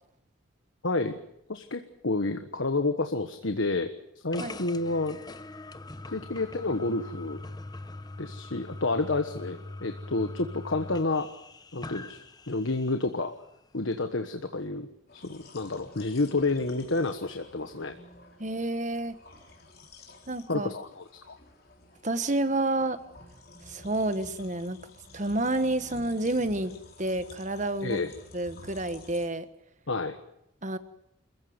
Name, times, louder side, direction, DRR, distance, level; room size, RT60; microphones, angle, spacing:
voice 1, 0.8-1.2 1.5-5.2 6.1-7.4 8.2-11.3 11.7-12.2 12.5-13.3 13.7-14.9 15.1-17.9 20.5-21.4 27.8-28.1 29.9-30.2, left 3 dB, 75° left, 8 dB, 1.3 m, -29 dB
sound 1, 4.3-13.1, left 2 dB, 20° left, 0.8 m, -42 dB
sound 2, 15.1-29.3, left 2 dB, 45° left, 3.8 m, -51 dB
voice 2, 18.4-19.1 20.3-20.7 22.0-23.0 23.7-24.8 25.1-26.7 27.0-28.0 28.3-29.5 30.6-30.8, right 2 dB, 35° right, 11 dB, 1.3 m, -29 dB
27.5 x 15.0 x 9.5 m, 0.79 s
head